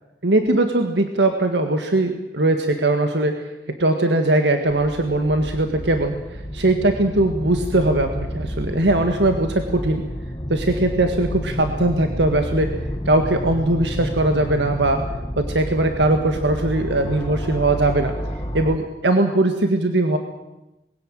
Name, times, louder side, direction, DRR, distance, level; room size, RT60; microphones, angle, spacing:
voice 1, 0.2-10.0 10.5-12.8 13.1-15.0 15.4-18.1 18.5-20.2, right 2 dB, 90° right, 6 dB, 1.8 m, -20 dB
sound 1, 4.7-18.8, equal, 25° left, 1.4 m, -30 dB
21.5 x 16.5 x 9.1 m, 0.96 s
head